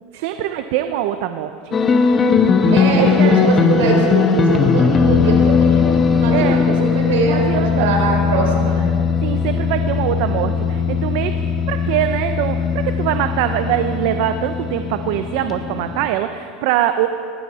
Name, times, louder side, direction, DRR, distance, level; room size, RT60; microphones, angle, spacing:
voice 1, 0.2-1.8 2.6-3.6 6.3-6.7 7.2-7.9 9.2-17.1, right 11 dB, 65° right, 8 dB, 0.7 m, -23 dB
sound 1, 1.7-16.1, left 5 dB, 25° left, 1.1 m, -18 dB
voice 2, 2.7-8.9, right 3 dB, 90° right, 0 dB, 4.0 m, -22 dB
20.0 x 15.5 x 4.3 m, 2.4 s
supercardioid pair, 140°, 0 cm